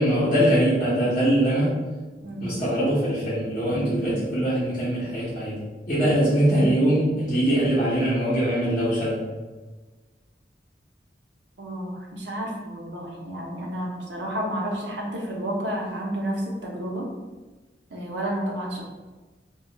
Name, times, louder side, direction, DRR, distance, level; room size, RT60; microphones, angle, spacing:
voice 1, 0.0-1.8 2.4-5.6 5.9-9.2, right 1 dB, 45° left, -11 dB, 0.7 m, -22 dB
voice 2, 2.2-2.5 6.0-6.1 11.6-17.1 17.9-18.8, right 1 dB, 85° right, -1 dB, 0.6 m, -31 dB
2.2 x 2.1 x 3.8 m, 1.3 s
head